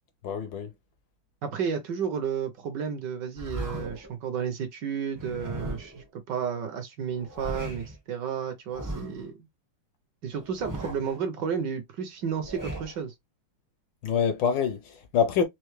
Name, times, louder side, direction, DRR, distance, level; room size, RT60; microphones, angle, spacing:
voice 1, 0.2-0.7 14.0-15.4, left 7 dB, 70° left, 1.2 m, -26 dB
voice 2, 1.4-9.5 10.2-13.1, right 7 dB, 65° right, 1.2 m, -32 dB
sound 1, 3.4-4.1 5.1-6.1 7.1-8.0 8.7-9.3 10.3-11.2 12.2-13.0, right 1 dB, 30° right, 0.3 m, -37 dB
4.5 x 2.6 x 3.1 m
omnidirectional pair, 2.4 m